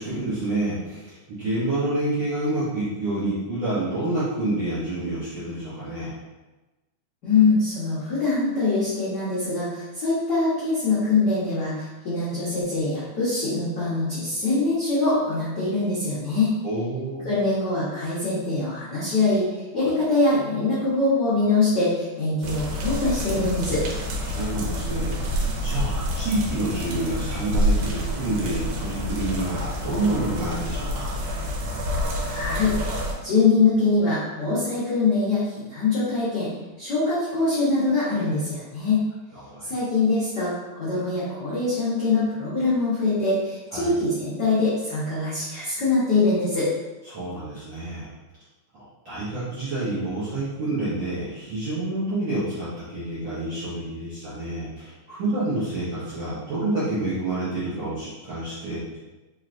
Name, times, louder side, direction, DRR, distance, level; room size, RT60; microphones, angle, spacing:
voice 1, 0.0-6.1 16.6-17.3 19.8-19.9 24.2-31.1 39.3-39.7 43.7-43.9 47.0-48.1 48.8-59.0, right 2 dB, 65° right, -11 dB, 1.2 m, -28 dB
voice 2, 7.2-16.6 17.2-23.8 32.3-32.7 33.2-36.5 36.8-39.0 39.6-46.7, left 3 dB, 80° left, -10 dB, 0.9 m, -23 dB
sound 1, 22.4-33.1, equal, 85° right, 2.2 m, -28 dB
4.6 x 3.2 x 2.5 m, 1.1 s
omnidirectional pair, 3.5 m